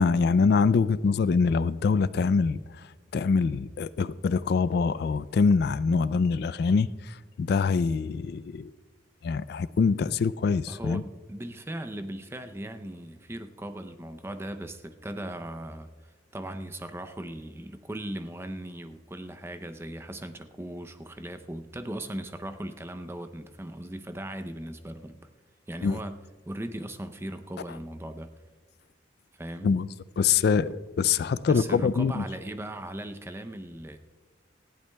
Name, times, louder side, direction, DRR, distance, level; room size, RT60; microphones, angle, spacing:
voice 1, 0.0-2.9 3.1-8.7 9.2-11.0 25.8-26.0 29.6-29.9 30.2-32.2, left 5 dB, 55° left, 17 dB, 0.3 m, -24 dB
voice 2, 10.7-15.9 16.3-25.2 25.7-26.2 26.5-28.3 29.3-29.7 31.5-34.0, right 1 dB, 15° right, 9 dB, 0.5 m, -38 dB
19.0 x 15.0 x 2.2 m, 1.4 s
head